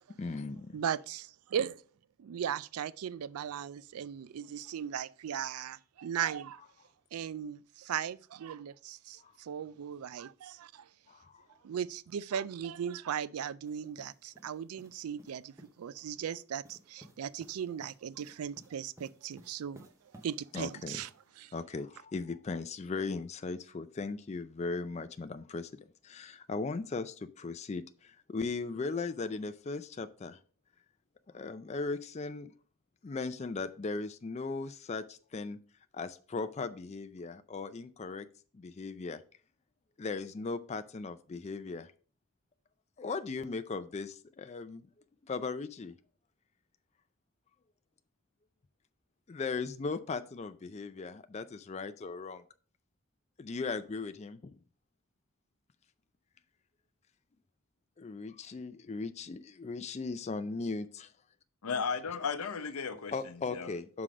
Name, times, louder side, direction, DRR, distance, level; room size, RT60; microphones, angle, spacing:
voice 1, 0.2-0.8 9.2-9.3 11.1-11.4 20.5-21.0 21.5-25.7 26.0-30.4 31.3-32.5 33.0-35.6 35.9-38.3 38.5-39.2 40.0-41.9 43.0-44.9 45.2-45.9 49.3-52.4 53.4-54.5 58.0-61.1 63.1-64.0, left 4 dB, 30° left, 0.4 m, -38 dB
voice 2, 0.7-1.8 2.2-6.6 7.1-10.9 11.6-19.9 20.2-21.1 21.4-21.5, right 8 dB, 85° right, 0.4 m, -37 dB
sound 1, 13.7-15.8 16.6-21.3, equal, 15° right, 0.8 m, -58 dB
voice 3, 61.6-63.8, left 5 dB, 90° left, 0.7 m, -35 dB
5.8 x 4.8 x 5.0 m
head